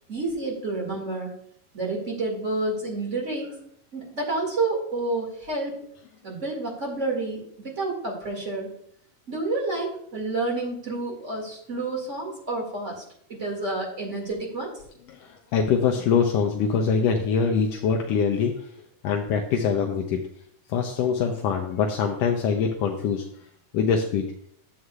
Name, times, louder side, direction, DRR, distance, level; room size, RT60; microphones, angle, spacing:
voice 1, 0.1-1.3 1.7-3.6 3.9-5.8 6.2-8.7 9.3-13.0 13.3-14.7, right 2 dB, 25° right, -1 dB, 2.1 m, -29 dB
voice 2, 15.5-18.5 19.0-20.2 20.7-23.2 23.7-24.2, left 6 dB, 75° left, 2 dB, 1.6 m, -23 dB
11.0 x 7.7 x 2.4 m, 0.66 s
omnidirectional pair, 3.4 m